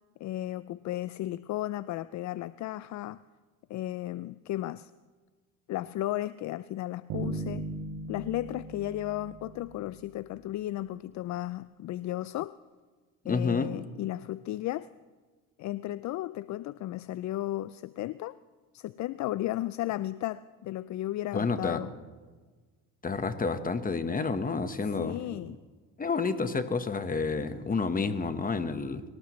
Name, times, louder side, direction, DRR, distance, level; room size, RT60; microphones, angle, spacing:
voice 1, 0.2-3.2 3.7-4.9 5.7-7.7 8.1-12.5 13.3-14.9 15.6-18.4 18.7-21.9 24.9-25.6, left 14 dB, 55° left, 16 dB, 0.4 m, -34 dB
sound 1, 7.1-10.1, right 3 dB, 70° right, 3.1 m, -38 dB
voice 2, 13.3-13.7 21.3-21.8 23.0-25.2 26.0-29.0, left 4 dB, 25° left, 10 dB, 1.3 m, -29 dB
24.5 x 18.0 x 3.2 m, 1.4 s
supercardioid pair, 90°, 35 cm